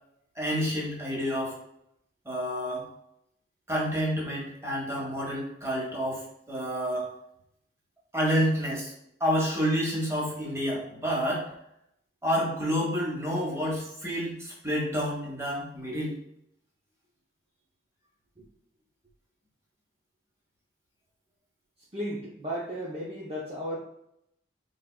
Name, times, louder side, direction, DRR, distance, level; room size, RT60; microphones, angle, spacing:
voice 1, 0.3-1.6 2.2-2.8 3.7-7.1 8.1-8.9 9.2-11.5 12.2-16.2, equal, 15° right, -4 dB, 1.4 m, -29 dB
voice 2, 21.9-23.8, equal, 30° right, -6 dB, 0.7 m, -34 dB
5.2 x 3.6 x 2.3 m, 0.76 s
head